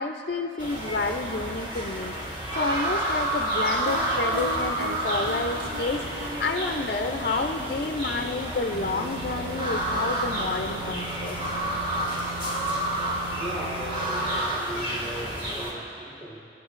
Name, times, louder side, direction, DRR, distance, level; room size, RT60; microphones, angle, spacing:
voice 1, 0.0-11.4, left 3 dB, 50° left, 4 dB, 0.5 m, -30 dB
sound 1, 0.6-15.7, right 1 dB, 25° right, 1.4 m, -30 dB
sound 2, 3.9-10.6, right 1 dB, 75° right, 0.9 m, -39 dB
sound 3, 8.7-14.5, right 5 dB, 60° right, 0.4 m, -40 dB
voice 2, 13.3-16.5, right 1 dB, 10° right, -3 dB, 1.4 m, -38 dB
28.5 x 9.5 x 2.5 m, 2.7 s
head